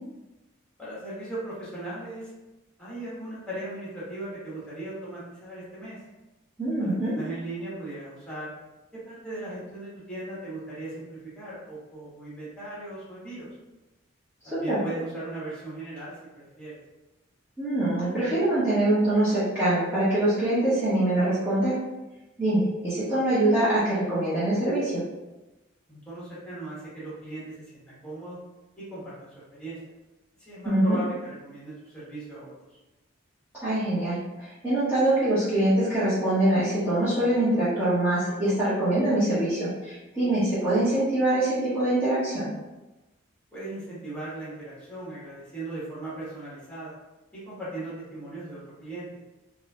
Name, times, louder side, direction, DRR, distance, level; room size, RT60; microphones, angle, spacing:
voice 1, 0.8-2.3 2.8-6.0 6.8-8.5 9.0-13.5 14.4-16.8 25.9-28.4 28.8-29.8 30.4-32.5 43.5-46.9 47.3-49.1, right 2 dB, 5° left, -9 dB, 1.4 m, -38 dB
voice 2, 6.6-7.1 14.5-14.8 17.6-21.7 22.4-25.0 30.6-31.0 33.6-42.5, right 1 dB, 10° right, -14 dB, 1.0 m, -24 dB
4.1 x 2.7 x 2.4 m, 1.0 s
head